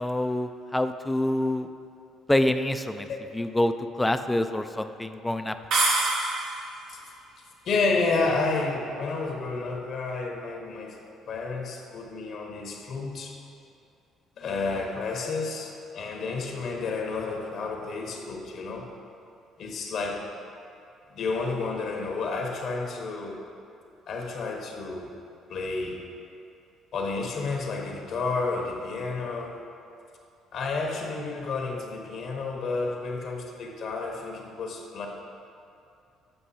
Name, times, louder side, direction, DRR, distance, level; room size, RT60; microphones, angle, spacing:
voice 1, 0.0-1.7 2.3-3.1 3.3-5.5, left 1 dB, 10° left, 9 dB, 0.4 m, -26 dB
sound 1, 5.7-6.8, right 2 dB, 70° right, 1.2 m, -25 dB
voice 2, 7.6-11.0 11.3-13.4 14.4-18.9 19.6-20.2 21.1-23.4 24.1-25.1 25.5-26.0 26.9-29.6 30.5-35.1, left 3 dB, 60° left, 1 dB, 1.1 m, -30 dB
7.8 x 5.3 x 4.2 m, 2.6 s
supercardioid pair, 80°, 0 cm